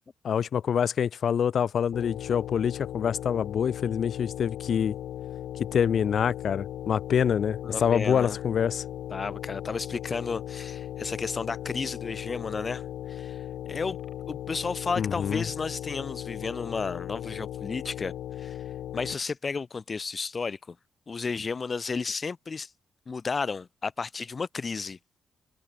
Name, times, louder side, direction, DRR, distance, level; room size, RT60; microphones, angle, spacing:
voice 1, 0.2-4.9 5.7-8.8 15.0-15.5, left 8 dB, 65° left, 2.5 m, -26 dB
sound 1, 1.9-19.1, left 11 dB, 85° left, 3.4 m, -37 dB
voice 2, 7.6-8.4 9.1-12.8 13.1-13.4 13.6-14.0 14.3-18.1 18.4-18.6 18.9-20.8 21.1-22.7 23.1-25.0, left 4 dB, 40° left, 4.8 m, -32 dB
cardioid pair, 80°, 0 cm